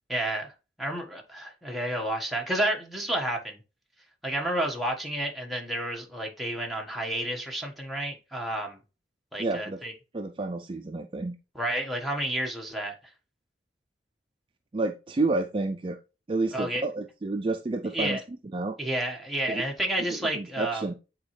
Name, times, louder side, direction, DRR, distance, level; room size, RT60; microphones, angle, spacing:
voice 1, 0.1-0.5 0.8-3.6 4.2-8.8 9.3-9.9 11.5-12.9 16.5-16.8 17.9-18.2 18.8-20.8, right 1 dB, ahead, 1.3 m, -30 dB
voice 2, 9.4-9.8 10.1-11.4 14.7-16.0 16.3-18.2 18.5-18.8 19.5-19.6 20.1-20.9, right 3 dB, 30° right, 0.4 m, -30 dB
8.4 x 4.3 x 3.2 m
head